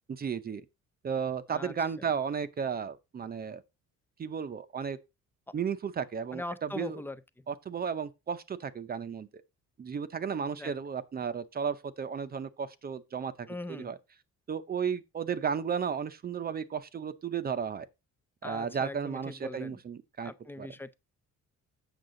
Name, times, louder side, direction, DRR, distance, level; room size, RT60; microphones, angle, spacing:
voice 1, 0.1-0.6 1.0-3.6 4.2-5.0 5.5-7.0 7.5-9.3 9.8-14.0 14.5-17.9 18.4-20.3 20.6-20.7, right 6 dB, 30° right, 0.6 m, -34 dB
voice 2, 1.5-2.1 6.3-7.2 10.6-10.7 13.5-13.9 18.4-19.8 20.2-20.9, left 2 dB, 5° left, 0.4 m, -41 dB
8.0 x 6.5 x 3.8 m
cardioid pair, 155°, 29 cm